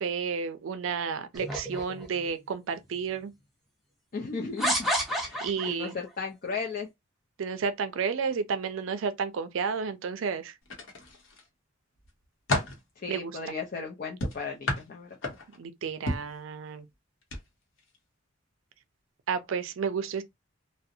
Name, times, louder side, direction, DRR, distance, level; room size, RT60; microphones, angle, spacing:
voice 1, 0.0-3.3 5.4-6.0 7.4-10.5 13.1-13.4 15.6-16.9 19.3-20.2, right 6 dB, 75° right, 0.4 m, -31 dB
sound 1, 1.3-2.3 3.1-3.2 4.6-5.9, equal, ahead, 0.6 m, -30 dB
voice 2, 4.1-6.9 13.0-15.3, left 4 dB, 45° left, 0.4 m, -36 dB
sound 2, 10.7-11.5 12.0-12.8 14.2-15.6 16.1-16.4 17.2-17.4 17.8-18.0, left 2 dB, 70° left, 0.8 m, -32 dB
2.4 x 2.0 x 2.7 m
head